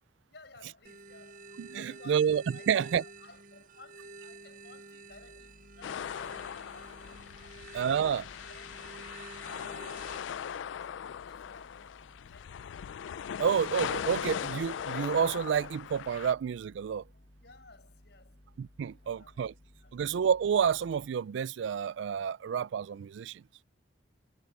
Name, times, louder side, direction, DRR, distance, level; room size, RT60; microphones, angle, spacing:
voice 1, 0.3-6.3 6.7-8.8 9.4-10.9 11.2-12.7 17.1-18.4 18.9-20.0, left 3 dB, 60° left, 6.3 m, -57 dB
sound 1, 0.8-10.2, right 3 dB, 40° right, 0.7 m, -50 dB
voice 2, 1.6-3.0 7.7-8.2 13.4-17.0 18.6-19.5 19.9-23.4, right 7 dB, 70° right, 0.3 m, -29 dB
sound 2, 5.1-21.1, left 1 dB, 35° left, 0.9 m, -59 dB
sound 3, 5.8-16.3, left 8 dB, 75° left, 0.3 m, -39 dB
head